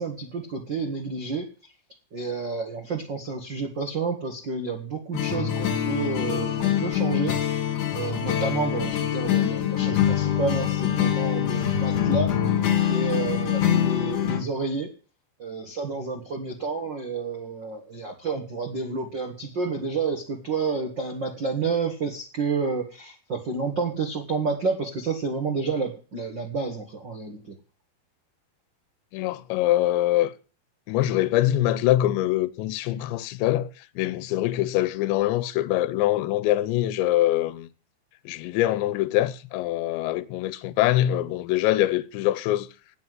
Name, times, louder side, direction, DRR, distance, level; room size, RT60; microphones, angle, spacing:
voice 1, 0.0-1.7 2.1-7.4 7.9-12.3 12.8-14.9 15.4-27.5, right 4 dB, 55° right, 1.2 m, -30 dB
sound 1, 5.1-14.4, left 10 dB, 55° left, 2.8 m, -24 dB
voice 2, 29.1-30.3 30.9-33.7 34.0-37.7 38.3-42.7, left 14 dB, 85° left, 3.1 m, -24 dB
9.7 x 8.9 x 9.4 m
omnidirectional pair, 5.1 m